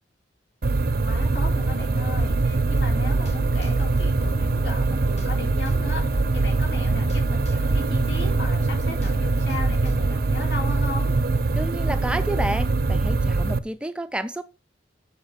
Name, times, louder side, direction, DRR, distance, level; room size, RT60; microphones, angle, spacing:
sound 1, 0.6-13.6, right 3 dB, 55° right, 0.5 m, -23 dB
voice 1, 1.0-11.1, left 2 dB, 70° left, 3.7 m, -36 dB
sound 2, 1.4-11.4, left 6 dB, 85° left, 3.3 m, -48 dB
Drum kit, 2.3-2.9 3.3-3.4 3.6-4.8 5.2-5.3 5.7-6.7 7.1-7.2 7.5-8.6 9.0-9.9, equal, 40° left, 1.7 m, -38 dB
voice 2, 11.5-14.4, right 1 dB, 5° right, 0.4 m, -30 dB
7.9 x 5.8 x 6.4 m
head